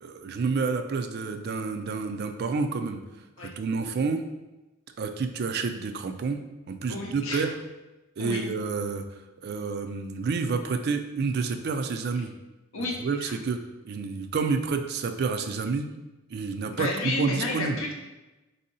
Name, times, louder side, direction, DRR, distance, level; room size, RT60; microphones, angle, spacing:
voice 1, 0.0-3.0 3.4-4.2 5.0-6.4 6.7-7.6 8.2-9.0 9.4-12.3 13.0-13.6 13.8-15.9 16.3-17.8, right 4 dB, 45° right, 6 dB, 0.3 m, -29 dB
voice 2, 6.9-7.5 8.2-8.4 12.7-13.3 16.7-17.9, left 2 dB, 60° left, 0 dB, 0.7 m, -31 dB
3.6 x 2.7 x 4.1 m, 1.1 s
head